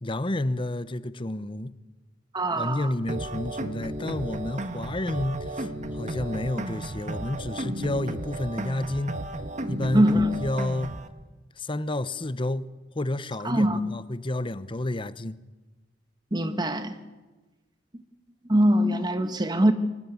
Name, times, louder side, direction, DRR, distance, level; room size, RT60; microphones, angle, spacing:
voice 1, 0.0-1.7 2.6-9.2 9.7-10.9 11.6-12.7 12.9-15.4, left 1 dB, 25° left, 0.9 m, -30 dB
voice 2, 2.3-2.9 9.9-10.3 13.4-13.8 16.3-17.0 18.5-19.7, equal, 25° right, 1.3 m, -22 dB
sound 1, 3.1-11.1, right 1 dB, 40° right, 1.5 m, -34 dB
24.5 x 18.5 x 9.6 m
head